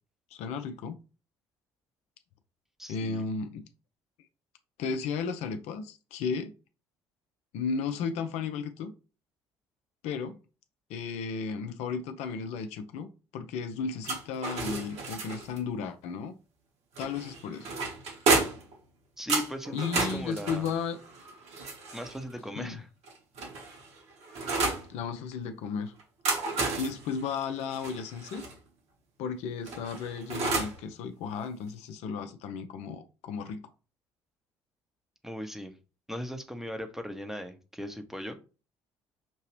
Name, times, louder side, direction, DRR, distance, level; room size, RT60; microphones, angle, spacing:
voice 1, 0.3-0.9 2.9-3.6 4.8-6.5 7.5-8.9 10.0-10.4 10.9-16.3 17.0-17.7 19.7-21.0 22.6-22.8 24.9-25.9 26.8-28.4 29.2-33.7, left 5 dB, 55° left, 0.5 m, -34 dB
voice 2, 2.8-3.2 19.2-20.7 21.9-22.9 35.2-35.8 36.1-38.4, equal, 5° right, 0.8 m, -38 dB
sound 1, 14.0-15.6 17.0-18.7 19.3-22.2 23.0-24.9 26.0-28.5 29.7-30.8, right 3 dB, 50° right, 1.3 m, -32 dB
5.9 x 2.8 x 3.1 m
figure-of-eight pair, 50°, 14 cm